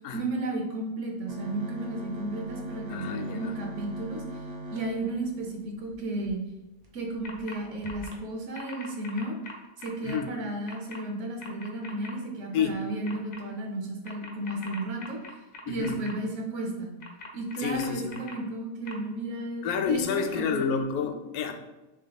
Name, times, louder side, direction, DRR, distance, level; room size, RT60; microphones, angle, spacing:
voice 1, 0.1-4.2 4.7-6.4 6.9-9.4 9.8-15.2 15.7-16.9 17.3-20.6, right 2 dB, 60° right, 1 dB, 1.0 m, -33 dB
sound 1, 1.3-6.3 6.8-6.9 7.2-7.4 7.8-8.2, equal, 40° right, 0.6 m, -41 dB
voice 2, 2.9-3.6 10.0-10.3 12.5-12.8 15.7-16.0 17.6-18.1 19.6-21.5, left 6 dB, 80° left, 5 dB, 1.0 m, -29 dB
sound 2, 7.2-7.6 7.8-8.1 8.5-10.2 10.7-11.0 11.4-12.1 13.0-13.4 14.0-16.1 17.0-18.3 18.9-19.0, left 3 dB, 60° left, 0.4 m, -43 dB
3.5 x 3.3 x 3.9 m, 1.0 s
omnidirectional pair, 1.5 m